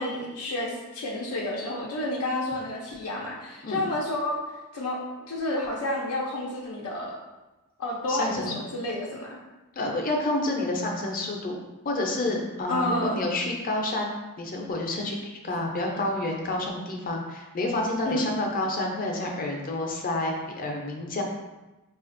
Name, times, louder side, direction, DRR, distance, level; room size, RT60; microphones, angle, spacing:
voice 1, 0.0-4.4 4.7-5.0 5.3-7.2 7.8-9.4 12.7-13.2 18.1-18.3, left 1 dB, 85° left, -3 dB, 0.5 m, -30 dB
voice 2, 8.1-8.6 9.8-11.6 11.8-21.2, left 2 dB, 40° left, 0 dB, 0.5 m, -29 dB
4.9 x 2.4 x 2.5 m, 1.1 s
head